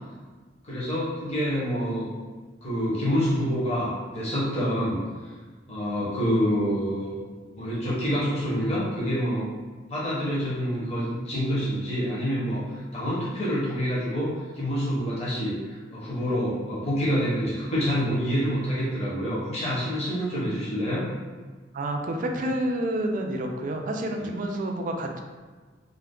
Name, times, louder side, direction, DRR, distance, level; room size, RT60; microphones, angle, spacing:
voice 1, 0.6-2.1 2.6-5.3 5.7-7.2 7.6-9.5 9.9-21.1, equal, 35° left, -8 dB, 0.9 m, -27 dB
voice 2, 21.7-25.2, right 1 dB, 45° right, 3 dB, 0.3 m, -29 dB
2.5 x 2.3 x 3.6 m, 1.4 s
head